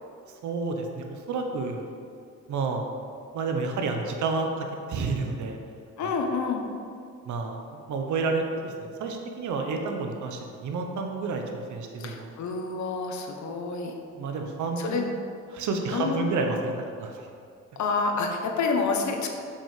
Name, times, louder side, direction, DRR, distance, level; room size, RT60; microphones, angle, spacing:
voice 1, 0.4-1.9 2.5-2.8 3.3-5.6 6.0-6.1 7.3-7.6 7.9-12.3 14.2-15.1 15.5-17.1, right 3 dB, 75° right, 3 dB, 1.2 m, -30 dB
voice 2, 6.0-6.6 12.0-13.9 14.8-15.1 15.9-16.3 17.8-19.3, left 4 dB, 70° left, 3 dB, 1.3 m, -28 dB
7.2 x 5.6 x 6.7 m, 2.3 s
cardioid pair, 90°, 30 cm